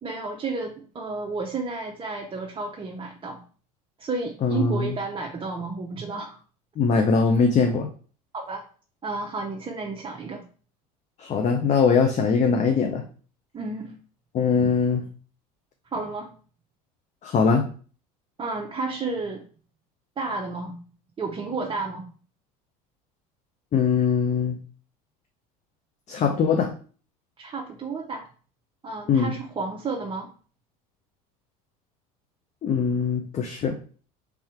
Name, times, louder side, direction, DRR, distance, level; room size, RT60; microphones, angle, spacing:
voice 1, 0.0-3.4 4.0-6.4 8.3-8.6 9.0-10.4 13.5-14.0 15.9-16.3 18.4-19.4 20.2-20.7 21.2-22.1 27.4-28.3 28.8-30.3, right 3 dB, 25° right, 0 dB, 0.7 m, -31 dB
voice 2, 4.4-4.9 6.8-7.9 11.2-13.0 14.3-15.0 17.2-17.7 23.7-24.6 26.1-26.7 29.1-29.3 32.6-33.8, left 5 dB, 40° left, 3 dB, 0.7 m, -21 dB
3.4 x 3.3 x 4.5 m, 0.41 s
supercardioid pair, 85°, 19 cm